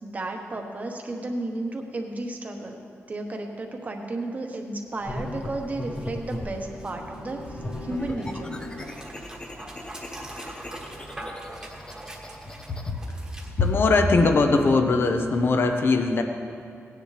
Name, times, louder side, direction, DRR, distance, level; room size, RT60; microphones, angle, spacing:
voice 1, 0.0-8.5, right 2 dB, 35° right, 2 dB, 1.1 m, -33 dB
Dog, 4.9-14.8, right 1 dB, 15° right, 1.3 m, -43 dB
sound 1, 5.1-6.7 7.4-12.9, left 1 dB, 20° left, 0.5 m, -38 dB
Bowed string instrument, 5.2-9.1, left 3 dB, 85° left, 3.0 m, -44 dB
voice 2, 13.6-16.2, left 3 dB, 50° left, 5 dB, 0.8 m, -21 dB
17.5 x 9.8 x 3.3 m, 2.4 s
wide cardioid pair, 160°, 5 cm